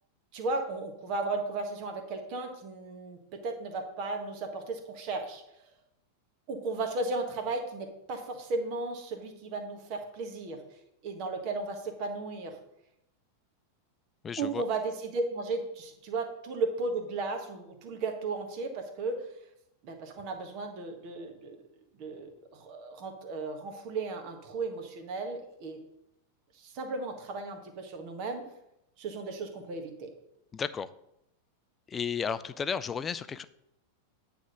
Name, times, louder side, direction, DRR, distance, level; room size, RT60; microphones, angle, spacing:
voice 1, 0.3-5.4 6.5-10.6 11.0-12.6 14.4-19.2 19.8-21.6 22.0-25.8 26.5-28.4 29.0-30.1, right 3 dB, 40° right, 5 dB, 1.5 m, -35 dB
voice 2, 14.2-14.6 30.5-30.9 31.9-33.4, left 6 dB, 20° left, 14 dB, 0.4 m, -33 dB
9.3 x 3.6 x 6.5 m, 0.83 s
figure-of-eight pair, 90°, 0 cm